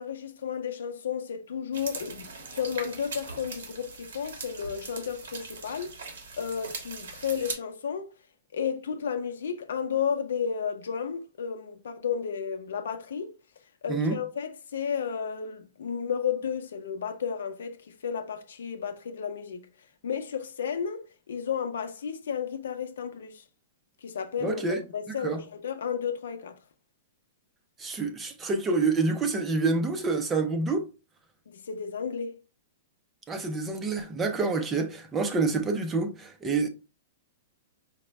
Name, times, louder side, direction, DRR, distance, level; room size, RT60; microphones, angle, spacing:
voice 1, 0.0-5.9 6.4-8.1 8.5-13.3 13.8-19.6 20.0-23.4 24.0-26.6 31.5-32.4, left 7 dB, 85° left, 0.7 m, -32 dB
sound 1, 1.7-7.5, right 4 dB, 90° right, 1.2 m, -40 dB
voice 2, 24.4-24.8 25.2-25.4 27.8-30.9 33.3-36.7, right 3 dB, 15° right, 0.5 m, -27 dB
5.0 x 2.2 x 3.1 m
hypercardioid pair, 165°, 0 cm